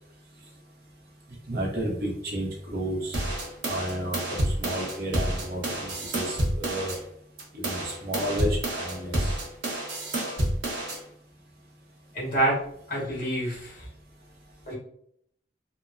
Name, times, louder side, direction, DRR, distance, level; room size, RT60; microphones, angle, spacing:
voice 1, 1.5-3.2 3.6-6.9 7.5-9.3, right 1 dB, 55° right, -1 dB, 0.7 m, -32 dB
sound 1, 3.1-7.0 7.4-11.0, right 1 dB, 90° right, 0.8 m, -29 dB
voice 2, 12.1-12.6 12.9-13.9 14.7-14.8, right 1 dB, 50° left, -5 dB, 1.3 m, -27 dB
2.9 x 2.1 x 2.4 m, 0.67 s
head